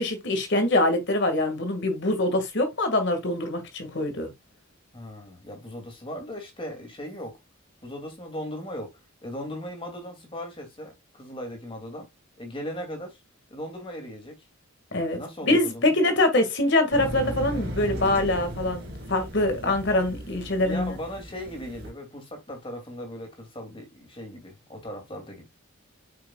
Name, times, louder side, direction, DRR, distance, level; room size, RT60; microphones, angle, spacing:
voice 1, 0.0-4.3 14.9-15.2 15.5-20.9, left 1 dB, 55° left, 1.9 m, -24 dB
voice 2, 4.9-7.4 7.8-12.1 12.4-13.2 13.5-14.5 15.1-15.9 20.3-25.5, equal, 25° left, 2.5 m, -38 dB
sound 1, 16.9-21.9, equal, 50° right, 2.8 m, -36 dB
7.9 x 5.9 x 2.3 m
head